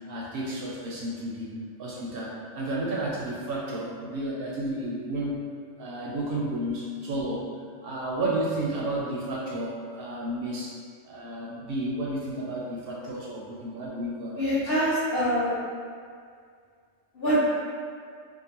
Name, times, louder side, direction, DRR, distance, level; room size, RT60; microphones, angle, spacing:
voice 1, 0.1-5.5 5.8-7.5 7.8-10.8 11.0-14.7, right 1 dB, 60° right, -4 dB, 0.7 m, -32 dB
voice 2, 14.4-15.5 17.2-17.4, equal, 55° left, -13 dB, 0.9 m, -24 dB
2.6 x 2.4 x 2.8 m, 2.1 s
omnidirectional pair, 1.3 m